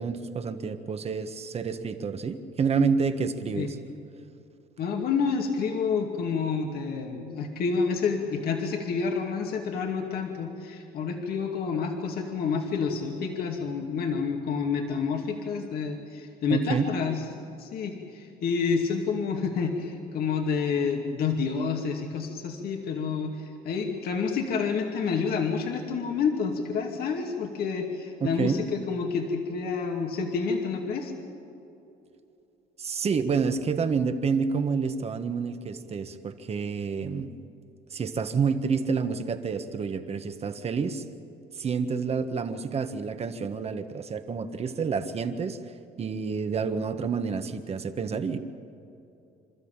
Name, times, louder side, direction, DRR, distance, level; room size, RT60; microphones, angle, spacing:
voice 1, 0.0-3.7 16.5-16.8 28.2-28.6 32.8-37.3 37.9-41.0 41.5-45.6 46.0-48.4, right 5 dB, 40° right, 8 dB, 1.5 m, -28 dB
voice 2, 4.8-17.2 17.6-31.1, left 5 dB, 65° left, 2 dB, 2.4 m, -29 dB
27.5 x 13.0 x 9.0 m, 2.8 s
cardioid pair, 110°, 17 cm